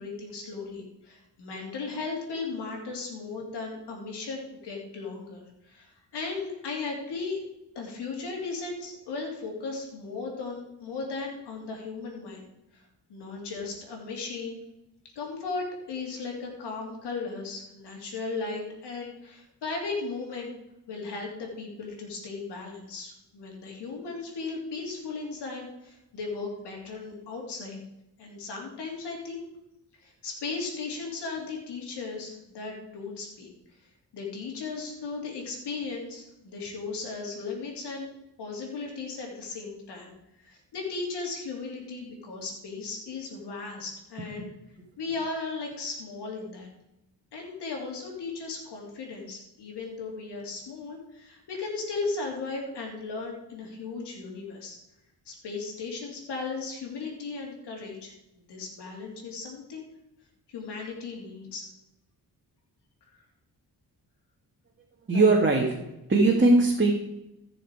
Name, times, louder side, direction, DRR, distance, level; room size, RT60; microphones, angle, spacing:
voice 1, 0.0-7.4 7.7-12.5 12.7-12.8 13.1-14.6 15.1-20.5 20.9-27.8 28.2-29.4 29.9-33.8 34.1-38.1 38.4-40.1 40.4-44.5 45.0-46.7 47.3-54.8 55.2-59.9 60.5-61.7, left 4 dB, 85° left, -1 dB, 3.2 m, -36 dB
voice 2, 65.1-66.9, right 2 dB, 30° right, -2 dB, 2.0 m, -21 dB
15.0 x 6.4 x 4.9 m, 0.88 s
cardioid pair, 70°, 40 cm